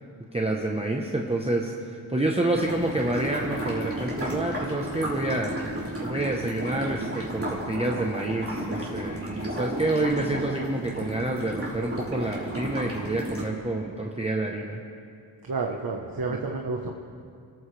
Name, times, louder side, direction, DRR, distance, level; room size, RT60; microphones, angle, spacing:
voice 1, 0.3-5.5 6.0-14.8, right 2 dB, 15° right, 0 dB, 1.0 m, -28 dB
sound 1, 2.5-13.4, right 1 dB, 30° right, 3.9 m, -33 dB
voice 2, 15.4-16.9, right 3 dB, 45° right, 1 dB, 1.2 m, -30 dB
30.0 x 14.5 x 3.4 m, 2.3 s
wide cardioid pair, 125°, 48 cm